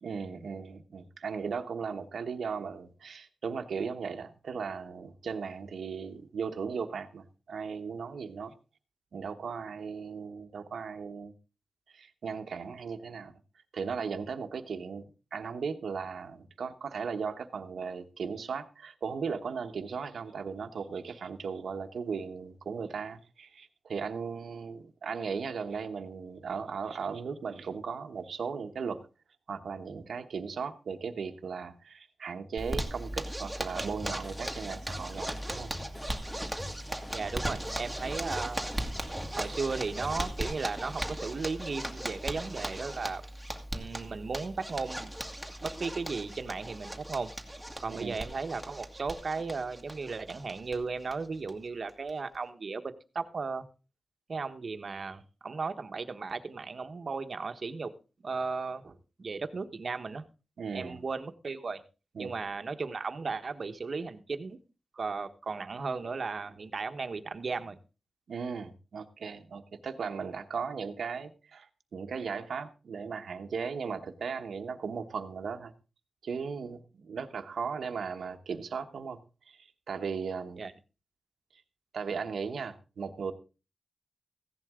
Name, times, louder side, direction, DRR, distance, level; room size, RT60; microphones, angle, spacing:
voice 1, 0.0-8.5 9.1-11.3 11.9-13.3 13.7-15.1 15.3-29.0 29.5-35.7 47.9-48.2 60.6-61.0 62.1-62.3 68.3-75.7 76.2-79.2 79.5-80.7 81.5-81.6 81.9-83.3, right 5 dB, 90° right, 7 dB, 1.2 m, -37 dB
Zipper (clothing), 32.6-50.8 51.1-51.2 51.5-51.6 51.9-52.4, right 1 dB, ahead, 2.0 m, -38 dB
sound 1, 33.8-40.7, left 1 dB, 25° left, 6.3 m, -47 dB
voice 2, 37.1-38.7 39.3-43.2 43.7-45.1 45.6-53.6 54.3-57.9 58.2-60.3 60.7-61.8 62.2-64.6 65.0-67.8 80.6-80.7, right 4 dB, 55° right, 8 dB, 1.2 m, -36 dB
15.5 x 11.0 x 3.7 m, 0.32 s
wide cardioid pair, 95°, 0 cm